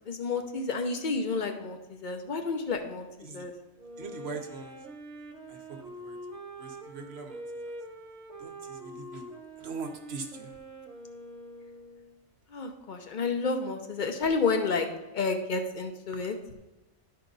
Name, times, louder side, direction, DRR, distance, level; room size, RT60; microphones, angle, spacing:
voice 1, 0.1-3.1 3.3-3.5 12.5-14.9 15.1-16.5, left 4 dB, 45° left, 6 dB, 0.7 m, -30 dB
Wind instrument woodwind instrument, 3.8-12.1, right 1 dB, 35° right, 1.3 m, -44 dB
voice 2, 4.0-4.8 5.5-7.8 8.4-9.3 9.6-10.5, right 4 dB, 55° right, 4 dB, 1.0 m, -42 dB
11.5 x 4.8 x 3.9 m, 1.1 s
omnidirectional pair, 1.4 m